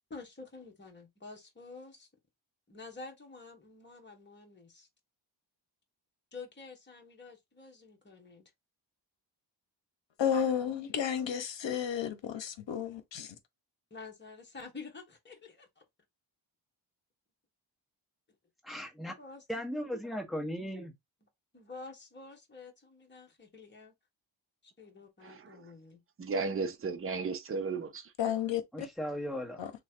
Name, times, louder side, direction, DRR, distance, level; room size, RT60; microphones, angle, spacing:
voice 1, 0.1-2.1 2.7-4.9 6.3-8.5 13.9-15.8 19.2-19.4 21.5-23.9 24.8-26.0, left 3 dB, 25° left, 1.2 m, -49 dB
voice 2, 10.2-13.3 28.2-28.9 29.6-29.7, left 8 dB, 70° left, 0.9 m, -32 dB
voice 3, 18.6-19.1 19.5-20.9 28.7-29.6, equal, ahead, 1.0 m, -37 dB
voice 4, 25.2-25.7 26.2-28.1, right 4 dB, 30° right, 0.6 m, -35 dB
3.1 x 2.4 x 4.3 m
wide cardioid pair, 130°, 46 cm